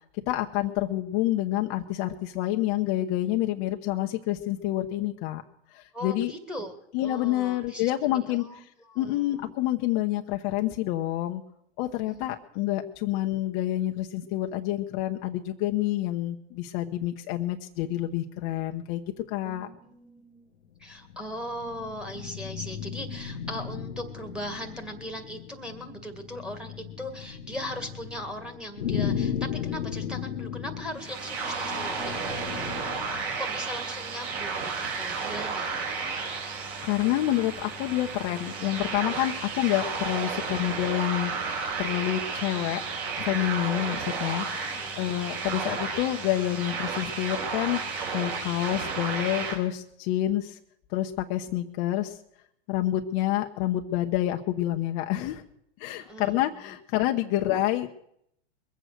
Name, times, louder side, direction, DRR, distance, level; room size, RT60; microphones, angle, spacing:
voice 1, 0.3-5.4 5.7-6.3 6.9-8.7 9.0-11.4 11.8-19.7 36.8-42.8 43.2-47.8 48.1-50.6 50.9-52.2 52.7-55.4 55.8-57.9, left 14 dB, 40° left, 5 dB, 0.9 m, -28 dB
voice 2, 5.9-6.8 7.0-9.5 12.1-12.4 19.4-20.5 20.8-36.0 43.6-44.0 44.7-44.9 56.0-56.7, equal, 5° right, 4 dB, 1.9 m, -39 dB
sound 1, 20.7-33.4, left 8 dB, 70° left, 1.2 m, -36 dB
sound 2, 31.0-49.6, right 5 dB, 45° right, 4.1 m, -32 dB
22.0 x 7.9 x 6.6 m, 0.75 s
hypercardioid pair, 120°, 34 cm